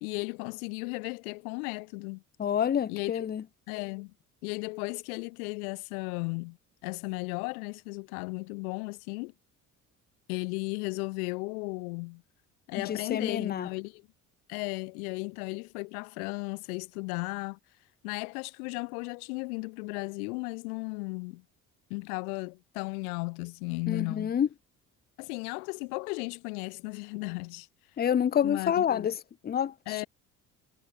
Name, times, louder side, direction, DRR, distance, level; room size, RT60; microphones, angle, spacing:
voice 1, 0.0-2.2 2.9-3.3 3.7-4.1 4.4-6.6 6.8-9.3 10.3-12.2 12.7-14.0 14.5-17.6 18.0-21.4 21.9-24.3 25.2-27.7 28.4-29.1 29.9-30.1, left 29 dB, 65° left, 1.6 m, -35 dB
voice 2, 2.4-3.4 12.9-13.7 23.9-24.5 28.0-29.1 29.4-30.0, left 9 dB, 20° left, 0.7 m, -28 dB
figure-of-eight pair, 55°, 48 cm